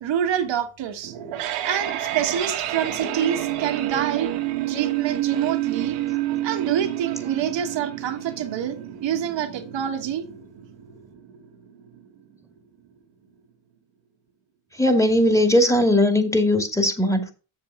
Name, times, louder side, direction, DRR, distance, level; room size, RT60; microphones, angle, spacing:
voice 1, 0.0-1.1 1.6-4.3 4.7-6.0 6.4-10.2, right 9 dB, 65° right, 1.5 m, -26 dB
sound 1, 1.0-12.0, right 13 dB, 85° right, 1.8 m, -29 dB
voice 2, 14.8-17.3, left 1 dB, 5° left, 2.4 m, -19 dB
7.6 x 7.1 x 5.0 m
supercardioid pair, 65°, 47 cm